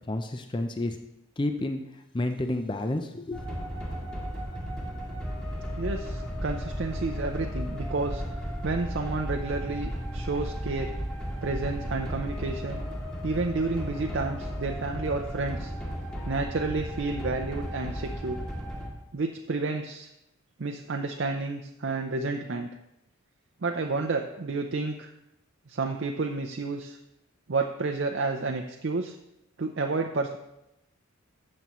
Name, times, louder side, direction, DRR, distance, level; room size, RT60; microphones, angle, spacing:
voice 1, 0.1-1.0 1.4-1.8 2.1-3.5, left 1 dB, 20° left, 6 dB, 0.5 m, -30 dB
sound 1, 3.3-18.9, equal, 5° left, 1.8 m, -34 dB
voice 2, 5.8-8.2 8.6-10.9 11.4-12.8 13.2-15.7 16.3-18.4 19.1-20.1 20.6-22.7 23.6-25.1 25.7-27.0 27.5-29.2 29.6-30.4, right 3 dB, 55° right, 4 dB, 0.6 m, -30 dB
12.5 x 7.6 x 3.1 m, 0.87 s
head